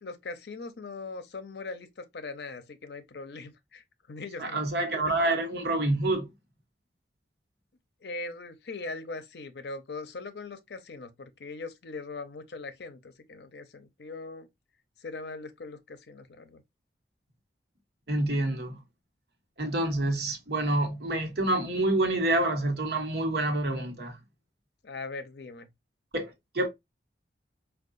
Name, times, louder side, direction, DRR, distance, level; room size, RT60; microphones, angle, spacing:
voice 1, 0.0-4.6 8.0-14.5 15.0-16.6 24.8-25.7, left 3 dB, 70° left, 0.6 m, -40 dB
voice 2, 4.4-6.3 18.1-18.8 19.6-24.2 26.1-26.7, right 1 dB, 65° right, 1.0 m, -27 dB
4.5 x 2.3 x 2.4 m
head